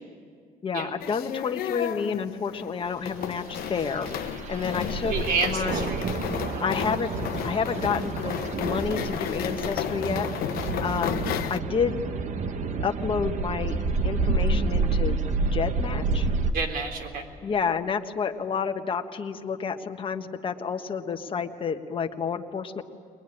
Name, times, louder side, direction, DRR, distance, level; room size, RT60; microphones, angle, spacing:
voice 1, 0.6-5.1 5.4-5.9 6.6-7.1 7.4-10.3 10.8-11.2 11.5-12.0 12.8-15.1 15.5-16.3 17.4-22.8, left 6 dB, 35° left, 6 dB, 1.3 m, -29 dB
sound 1, 1.0-11.6, left 11 dB, 85° left, 0.9 m, -33 dB
sound 2, 3.1-16.5, right 3 dB, 55° right, 1.1 m, -29 dB
voice 2, 5.1-6.1 6.5-6.6 16.5-17.3, right 4 dB, 75° right, 1 dB, 3.7 m, -29 dB
22.0 x 21.5 x 9.9 m, 2.1 s
cardioid pair, 135°, 15 cm